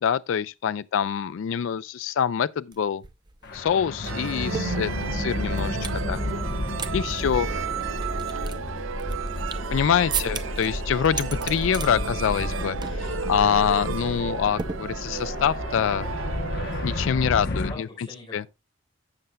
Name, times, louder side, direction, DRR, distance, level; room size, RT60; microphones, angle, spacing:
voice 1, 0.0-3.0 3.5-6.2 6.9-7.5 9.7-16.1 16.8-18.1 18.3-18.4, left 8 dB, 75° left, 0.4 m, -25 dB
sound 1, 2.7-2.8 3.0-6.0 6.4-6.9 7.2-7.3 7.8-9.7 10.1-10.7 11.0-11.9 12.2-12.5 12.8-13.1 13.4-13.6 14.6-15.3, right 6 dB, 20° right, 0.6 m, -35 dB
sound 2, 3.4-17.7, left 1 dB, 55° left, 1.0 m, -32 dB
sound 3, 4.0-17.1, right 6 dB, 80° right, 0.6 m, -34 dB
voice 2, 7.2-7.9 10.0-10.2 17.5-18.5, left 1 dB, 25° left, 4.1 m, -45 dB
12.5 x 7.8 x 2.3 m
head